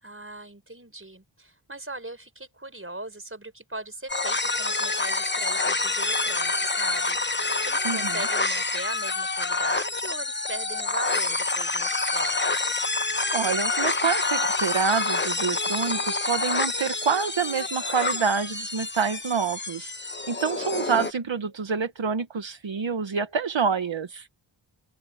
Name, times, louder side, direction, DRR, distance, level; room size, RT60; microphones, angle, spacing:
voice 1, 0.0-12.7, right 2 dB, 25° right, 5.3 m, -39 dB
sound 1, 4.1-21.1, left 3 dB, 25° left, 1.0 m, -27 dB
voice 2, 7.8-8.2 13.3-24.3, right 6 dB, 70° right, 1.4 m, -27 dB
open air
wide cardioid pair, 65°, 47 cm